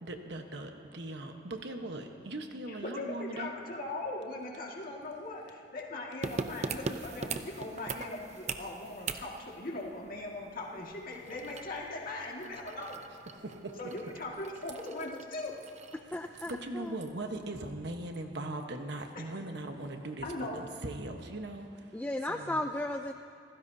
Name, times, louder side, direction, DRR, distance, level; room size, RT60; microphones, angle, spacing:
voice 1, 0.0-3.5 14.0-14.1 16.5-21.7 22.3-22.7, right 2 dB, 65° right, 4 dB, 1.2 m, -39 dB
voice 2, 2.7-13.0 13.8-15.5 19.2-19.3 20.2-20.6, left 2 dB, 50° left, -1 dB, 2.0 m, -40 dB
sound 1, 6.2-16.7 17.0-17.1, right 4 dB, 40° right, 0.6 m, -42 dB
voice 3, 16.1-17.0 21.9-23.1, left 1 dB, 10° left, 6 dB, 0.4 m, -35 dB
28.0 x 15.5 x 2.8 m, 2.7 s
head